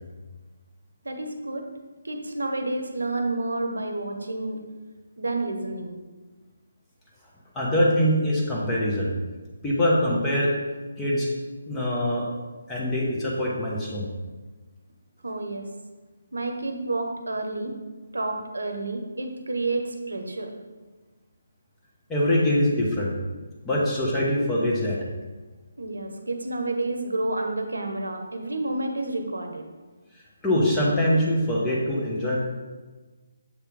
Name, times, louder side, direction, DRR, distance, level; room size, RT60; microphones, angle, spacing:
voice 1, 1.0-1.7 2.0-4.6 5.2-6.0 15.2-15.7 16.3-17.7 18.1-20.5 25.8-29.7, right 2 dB, 85° right, 4 dB, 0.8 m, -30 dB
voice 2, 7.5-9.1 9.6-10.5 11.0-11.3 11.7-12.3 12.7-14.1 22.1-23.1 23.6-25.0 30.4-32.4, left 1 dB, 10° left, -5 dB, 1.2 m, -23 dB
7.2 x 3.3 x 4.7 m, 1.3 s
figure-of-eight pair, 155°, 0 cm